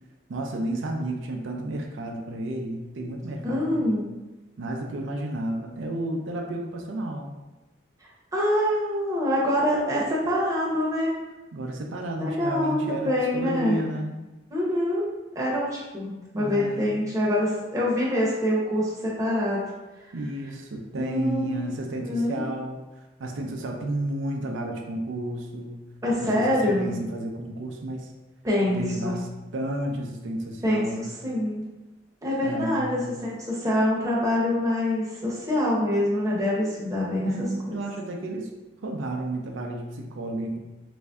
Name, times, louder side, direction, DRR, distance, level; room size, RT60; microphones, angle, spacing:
voice 1, 0.3-3.9 4.6-7.3 11.5-14.2 16.3-17.0 20.1-22.8 23.2-25.8 26.2-28.1 28.7-29.3 29.5-31.1 32.4-33.1 37.2-38.5 38.8-40.6, right 1 dB, 90° right, 1 dB, 0.5 m, -32 dB
voice 2, 3.4-4.0 8.3-11.1 12.2-12.8 13.0-13.8 14.5-15.1 15.3-19.6 21.0-21.7 22.0-22.4 26.0-26.9 28.4-29.2 30.6-30.9 31.2-31.6 32.2-37.8, left 1 dB, 15° right, -6 dB, 0.8 m, -25 dB
3.2 x 2.6 x 3.4 m, 1.1 s
head